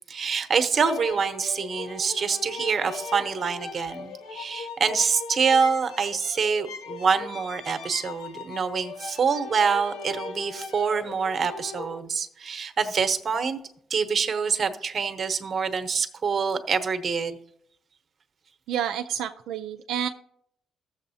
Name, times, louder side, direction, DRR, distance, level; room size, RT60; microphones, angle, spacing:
voice 1, 0.1-13.6 13.9-17.4, right 5 dB, 45° right, 8 dB, 1.0 m, -26 dB
sound 1, 0.7-12.0, left 4 dB, 85° left, 1.0 m, -39 dB
voice 2, 18.7-20.1, right 9 dB, 85° right, 5 dB, 0.4 m, -29 dB
15.0 x 7.1 x 2.8 m, 0.69 s
cardioid pair, 90°, 0 cm